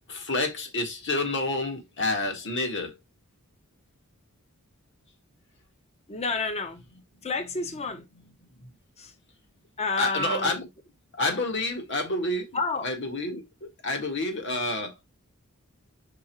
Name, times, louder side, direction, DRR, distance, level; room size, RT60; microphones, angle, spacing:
voice 1, 0.1-3.0 8.6-8.7 10.0-10.7 11.1-14.9, left 2 dB, 55° left, 1.9 m, -29 dB
voice 2, 6.1-6.8 7.2-8.1 9.0-9.1 9.8-10.6 12.5-12.9, left 3 dB, 30° left, 0.8 m, -30 dB
5.2 x 4.5 x 4.6 m
head